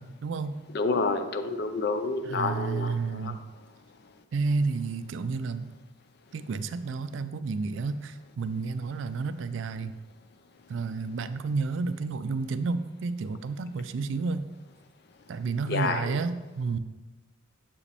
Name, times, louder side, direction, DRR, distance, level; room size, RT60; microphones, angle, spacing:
voice 1, 0.0-0.6 2.2-3.4 4.3-5.7 6.3-9.9 10.7-14.5 15.3-16.8, right 4 dB, 65° right, 12 dB, 0.3 m, -31 dB
voice 2, 0.7-3.3 15.7-16.2, left 3 dB, 55° left, 8 dB, 0.5 m, -29 dB
7.0 x 4.9 x 3.4 m, 1.1 s
head